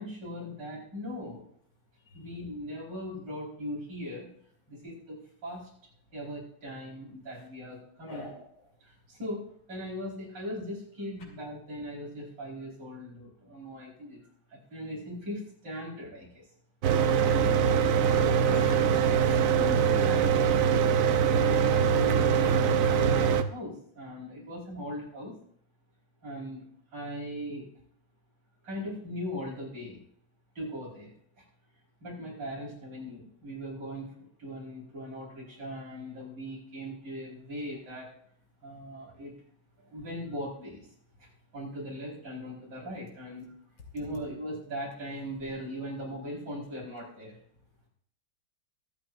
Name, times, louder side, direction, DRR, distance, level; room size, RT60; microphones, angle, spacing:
voice 1, 0.0-1.4 2.1-4.3 4.7-5.6 6.1-8.3 8.8-14.2 14.5-16.5 17.2-18.2 19.6-20.6 21.1-25.3 26.2-26.7 26.9-27.7 28.6-30.0 30.6-31.1 32.0-34.1 34.4-38.1 38.6-39.3 39.8-40.9 41.2-41.3 41.5-43.5 43.9-47.4, equal, 60° right, -4 dB, 5.2 m, -39 dB
voice 2, 8.1-8.5 17.6-17.8 18.1-19.1, left 3 dB, 75° left, 1 dB, 3.0 m, -42 dB
Mechanical fan, 16.8-23.4, right 7 dB, 90° right, 0.7 m, -23 dB
22.5 x 8.2 x 2.6 m, 0.66 s
omnidirectional pair, 2.2 m